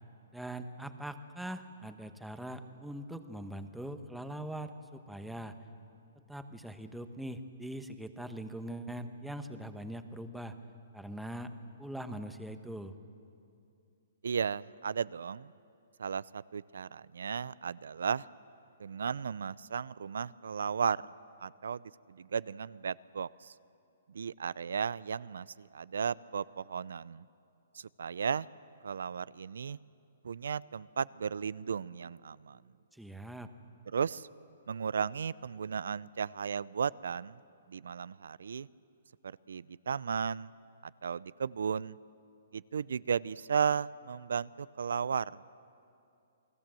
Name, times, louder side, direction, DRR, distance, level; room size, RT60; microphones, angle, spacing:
voice 1, 0.3-5.6 6.3-10.6 10.9-11.5 11.8-12.9 32.9-33.5, right 1 dB, ahead, 8 dB, 1.1 m, -42 dB
voice 2, 14.2-15.5 16.0-18.3 18.8-21.0 21.4-21.8 22.1-23.5 24.1-27.2 28.0-28.5 28.8-29.8 30.2-32.6 33.9-34.3 34.7-37.4 37.7-38.7 39.2-40.5 41.0-42.0 42.5-45.4, right 6 dB, 80° right, 20 dB, 0.5 m, -35 dB
29.0 x 19.5 x 7.6 m, 2.5 s
hypercardioid pair, 150°, 0 cm